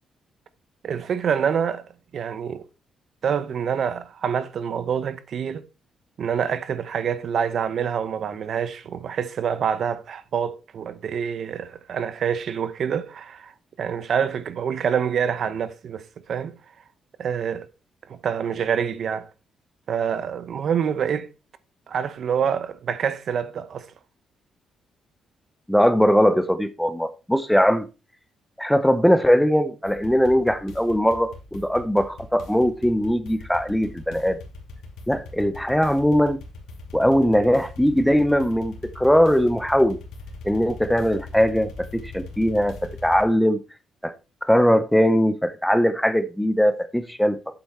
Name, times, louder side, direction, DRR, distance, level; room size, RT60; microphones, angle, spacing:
voice 1, 0.8-1.8 2.1-2.6 3.2-5.6 6.2-13.5 13.8-16.6 17.2-17.7 18.1-19.3 19.9-21.3 21.9-23.9, right 7 dB, 45° right, 0.9 m, -26 dB
voice 2, 25.7-27.9 28.6-34.4 35.1-36.4 36.9-40.0 40.4-42.8 43.0-43.6 44.0-44.1 44.4-47.4, equal, ahead, 0.6 m, -20 dB
sound 1, 29.8-43.2, left 2 dB, 80° left, 2.8 m, -41 dB
8.2 x 8.1 x 4.3 m
cardioid pair, 175°, 0 cm